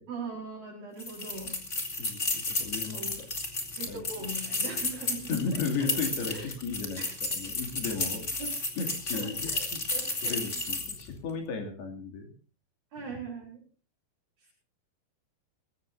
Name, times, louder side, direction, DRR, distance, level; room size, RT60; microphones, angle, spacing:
voice 1, 0.1-1.5 2.8-3.2 3.8-5.6 6.3-6.5 7.0-7.1 8.4-8.5 9.1-10.6 12.9-13.6, right 3 dB, 55° right, -3 dB, 6.1 m, -40 dB
sound 1, 1.0-11.1, left 2 dB, 25° left, 2.0 m, -33 dB
voice 2, 2.0-3.3 3.9-4.0 5.3-7.0 7.3-8.2 8.8-9.8 10.2-12.3 13.0-13.1, left 5 dB, 70° left, 4 dB, 4.7 m, -35 dB
22.0 x 15.5 x 2.7 m, 0.36 s
omnidirectional pair, 4.7 m